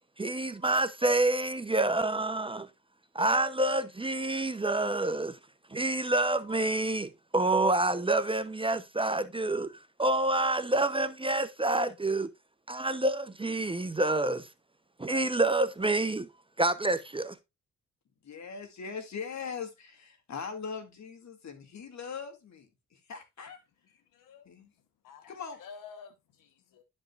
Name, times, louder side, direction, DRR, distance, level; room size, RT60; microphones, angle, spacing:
voice 1, 0.2-2.7 3.1-5.4 5.7-9.7 10.0-12.3 12.7-14.5 15.0-16.3 16.6-17.3, right 2 dB, 15° right, 0.8 m, -28 dB
voice 2, 18.2-23.6 24.4-24.7 25.3-25.6, left 6 dB, 60° left, 2.4 m, -41 dB
voice 3, 24.1-24.5 25.0-26.8, left 6 dB, 85° left, 1.2 m, -50 dB
12.0 x 5.4 x 2.4 m
cardioid pair, 65°, 32 cm